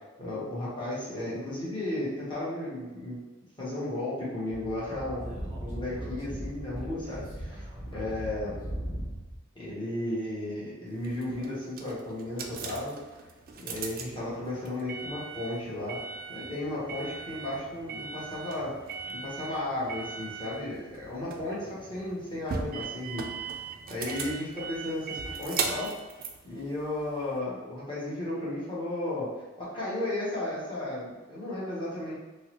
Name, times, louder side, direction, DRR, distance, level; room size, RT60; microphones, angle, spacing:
voice 1, 0.2-3.2 3.6-7.6 7.9-8.5 9.5-12.9 13.5-16.0 16.3-18.7 19.1-23.5 23.9-25.9 26.4-29.3 29.6-32.1, left 1 dB, 20° left, -9 dB, 1.2 m, -34 dB
Speech / Wind, 4.5-9.4, equal, 10° right, 1.0 m, -38 dB
sound 1, 11.0-27.4, right 5 dB, 40° right, 0.3 m, -39 dB
3.6 x 2.0 x 3.0 m, 1.2 s
head